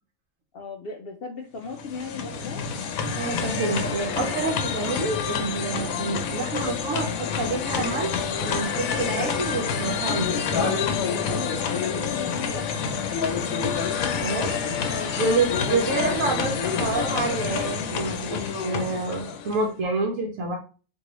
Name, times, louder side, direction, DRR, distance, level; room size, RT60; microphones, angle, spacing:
voice 1, 0.5-2.7 11.1-12.8 14.9-15.2, left 4 dB, 65° left, 3 dB, 0.6 m, -37 dB
sound 1, 1.6-19.7, left 6 dB, 85° left, 1.0 m, -28 dB
voice 2, 3.2-10.8 14.2-14.5 15.2-20.6, right 3 dB, 70° right, 0 dB, 1.0 m, -28 dB
3.8 x 2.6 x 3.0 m, 0.37 s
omnidirectional pair, 1.4 m